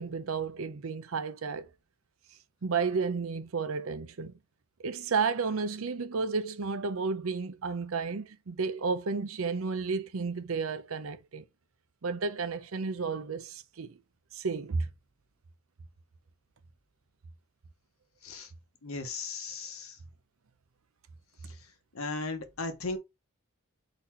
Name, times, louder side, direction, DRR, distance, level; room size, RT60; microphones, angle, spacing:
voice 1, 0.0-1.7 2.6-4.3 4.8-11.4 12.0-14.0 14.3-14.9, right 5 dB, 85° right, 0.6 m, -32 dB
voice 2, 18.8-20.0 21.9-23.0, left 3 dB, 85° left, 1.0 m, -36 dB
4.1 x 2.8 x 4.3 m
head